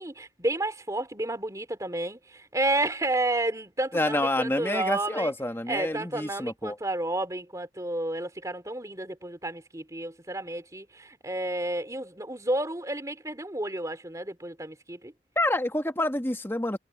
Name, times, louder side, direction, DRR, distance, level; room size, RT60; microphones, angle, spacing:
voice 1, 0.0-5.3 5.7-15.1, right 2 dB, 20° right, 3.3 m, -31 dB
voice 2, 3.9-6.8 15.4-16.8, left 1 dB, 15° left, 1.8 m, -28 dB
head